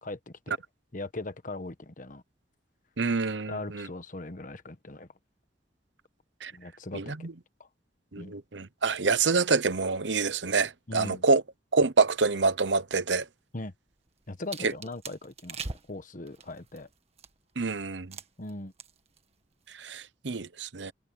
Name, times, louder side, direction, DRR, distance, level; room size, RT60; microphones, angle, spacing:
voice 1, 0.0-0.6 0.9-2.2 3.5-5.1 6.5-7.0 7.6-7.7 8.2-8.3 10.9-11.2 13.5-13.7 14.3-16.9 18.4-18.7, left 2 dB, 45° left, 1.4 m, -39 dB
voice 2, 3.0-3.9 6.4-6.5 6.9-7.3 8.1-11.4 11.7-13.3 17.6-18.2 19.8-20.9, right 4 dB, 80° right, 0.9 m, -27 dB
sound 1, 13.9-17.5 18.1-18.5 18.8-19.2 19.5-19.7, right 4 dB, 35° right, 1.7 m, -42 dB
head